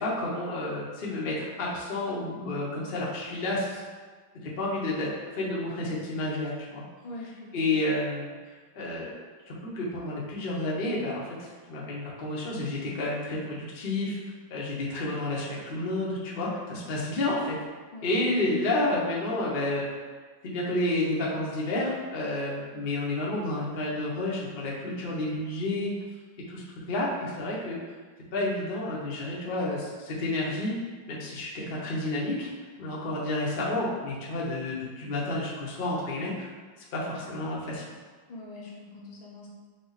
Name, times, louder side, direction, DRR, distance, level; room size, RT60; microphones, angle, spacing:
voice 1, 0.0-3.8 4.4-6.8 7.5-8.3 8.7-9.2 9.5-14.2 14.5-17.6 18.0-19.9 20.4-25.9 26.5-27.8 28.3-30.7 31.1-32.5 32.8-36.5 36.9-37.8, left 2 dB, 60° left, -5 dB, 0.5 m, -30 dB
voice 2, 7.0-7.8 17.9-18.1 38.3-39.5, left 2 dB, 80° left, -3 dB, 1.7 m, -43 dB
5.5 x 2.1 x 3.9 m, 1.4 s
omnidirectional pair, 2.2 m